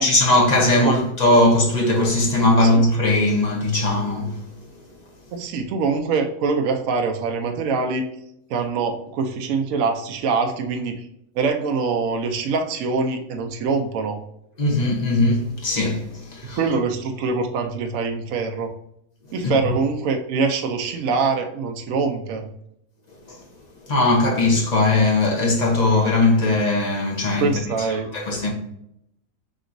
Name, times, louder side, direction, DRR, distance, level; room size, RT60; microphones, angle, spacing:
voice 1, 0.0-4.4 14.6-16.6 19.4-19.6 23.3-23.4 23.9-27.5 28.1-28.5, left 2 dB, 35° left, 0.8 m, -19 dB
voice 2, 5.3-8.1 8.5-11.0 11.4-14.2 16.6-18.7 19.3-22.5 27.4-28.1, right 4 dB, 70° right, 0.9 m, -24 dB
5.2 x 2.9 x 2.5 m
omnidirectional pair, 1.6 m